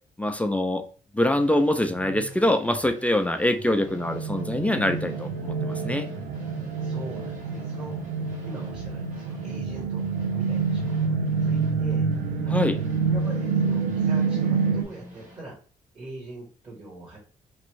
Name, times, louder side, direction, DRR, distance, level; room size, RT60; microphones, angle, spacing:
voice 1, 0.2-0.8 1.1-6.1 12.5-12.8, left 1 dB, 10° left, 6 dB, 0.4 m, -24 dB
sound 1, 1.4-15.4, right 3 dB, 55° right, 1.6 m, -45 dB
sound 2, 3.7-14.8, right 5 dB, 85° right, 0.6 m, -27 dB
voice 2, 6.8-8.0 8.4-10.0 10.3-12.1 12.4-12.7 13.1-15.6 15.9-17.2, right 2 dB, 30° right, -4 dB, 1.4 m, -42 dB
3.0 x 2.6 x 3.1 m, 0.38 s
supercardioid pair, 75°, 16 cm